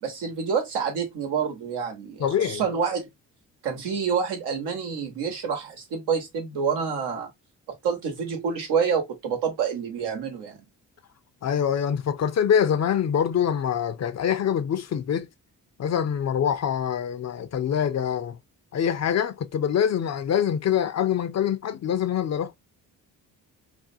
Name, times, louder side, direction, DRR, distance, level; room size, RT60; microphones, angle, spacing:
voice 1, 0.0-3.1 3.6-7.3 7.8-10.6, right 6 dB, 85° right, 1.0 m, -27 dB
voice 2, 2.2-2.6 11.4-15.3 15.8-18.4 18.7-22.5, left 8 dB, 45° left, 0.5 m, -25 dB
2.5 x 2.2 x 2.6 m
supercardioid pair, 55°, 40 cm